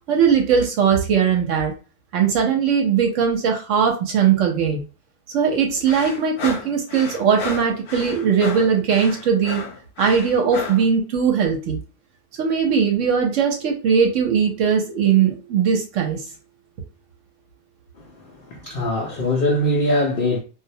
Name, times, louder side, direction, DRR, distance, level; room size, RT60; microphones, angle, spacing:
voice 1, 0.1-1.7 2.1-4.8 5.3-9.6 10.0-11.8 12.4-16.2, right 7 dB, 65° right, 0.9 m, -19 dB
sound 1, 5.9-10.9, left 4 dB, 60° left, 0.8 m, -33 dB
voice 2, 18.0-20.4, left 1 dB, 75° left, 0.5 m, -22 dB
2.4 x 2.0 x 2.6 m
omnidirectional pair, 1.5 m